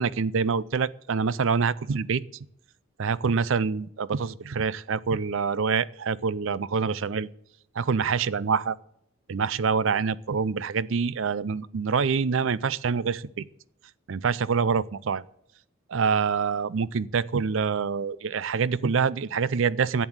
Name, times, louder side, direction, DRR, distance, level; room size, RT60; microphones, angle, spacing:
voice 1, 0.0-2.2 3.0-7.3 7.8-8.7 9.3-13.4 14.1-15.2 15.9-20.1, right 5 dB, 65° right, 20 dB, 0.5 m, -26 dB
11.0 x 8.1 x 8.8 m, 0.77 s
head